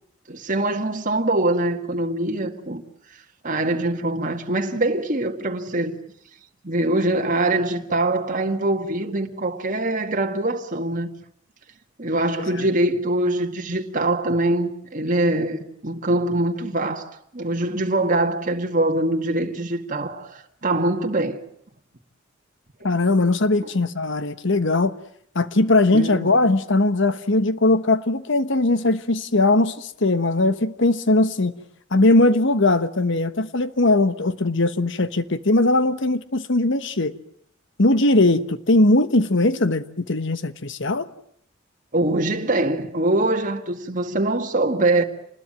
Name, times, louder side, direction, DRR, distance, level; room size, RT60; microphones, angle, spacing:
voice 1, 0.3-2.8 3.4-6.0 6.6-11.1 12.0-21.4 22.8-22.9 25.9-26.3 41.9-45.0, right 2 dB, 40° right, 1.9 m, -23 dB
voice 2, 22.8-25.0 25.3-31.5 31.9-37.1 37.8-41.1, left 2 dB, 60° left, 1.3 m, -20 dB
27.5 x 20.5 x 9.2 m
head